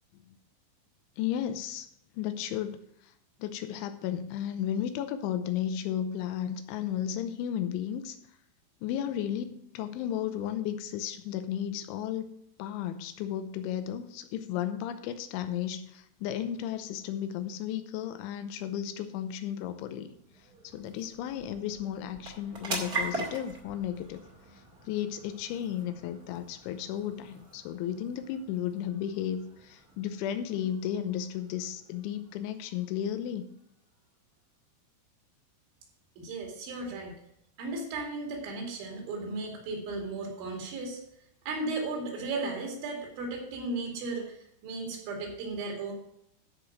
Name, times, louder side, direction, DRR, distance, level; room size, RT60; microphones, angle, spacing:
voice 1, 1.2-1.9 2.1-3.1 3.4-8.2 8.8-12.3 12.6-20.1 20.6-24.2 24.9-33.4, left 10 dB, 90° left, 9 dB, 3.1 m, -34 dB
sound 1, 19.4-34.1, right 2 dB, 45° right, 1.2 m, -43 dB
voice 2, 36.2-37.2 37.6-41.0 41.5-44.3 44.6-45.9, right 3 dB, 75° right, 0 dB, 4.7 m, -35 dB
13.5 x 5.1 x 6.0 m, 0.74 s
omnidirectional pair, 5.5 m